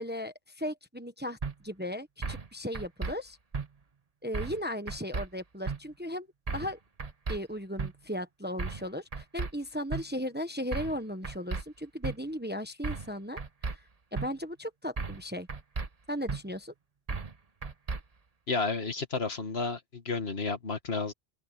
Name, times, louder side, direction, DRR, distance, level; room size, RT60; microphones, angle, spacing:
voice 1, 0.0-1.4 1.6-3.4 4.2-6.3 6.5-6.8 7.3-13.8 14.1-15.5 16.1-16.7, equal, 10° right, 1.1 m, -36 dB
sound 1, 1.4-1.5 2.2-2.5 2.8-3.1 3.5-3.7 4.3-4.6 4.9-5.3 5.7-5.8 6.5-6.7 7.0-7.4 7.8-7.9 8.6-8.8 9.1-9.5 9.9-10.0 10.7-11.0 11.2-11.6 12.0-12.2 12.8-13.1 13.4-13.8 14.2-14.3 15.0-15.2 15.5-15.9 16.3-16.4 17.1-17.3 17.6-18.0, right 4 dB, 35° right, 1.1 m, -34 dB
voice 2, 18.5-21.1, left 4 dB, 65° left, 2.1 m, -31 dB
open air
omnidirectional pair, 1.1 m